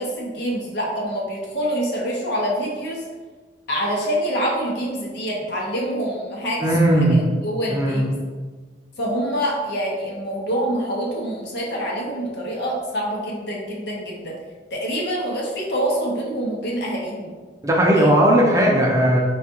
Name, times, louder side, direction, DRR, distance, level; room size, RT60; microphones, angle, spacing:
voice 1, 0.0-3.0 3.7-6.7 7.1-8.1 9.0-14.3 14.7-17.3 17.9-18.1, equal, 65° left, -2 dB, 0.8 m, -26 dB
voice 2, 6.6-7.2 7.7-8.0 17.6-19.2, right 1 dB, 20° right, -2 dB, 0.5 m, -17 dB
4.3 x 2.4 x 2.8 m, 1.4 s
head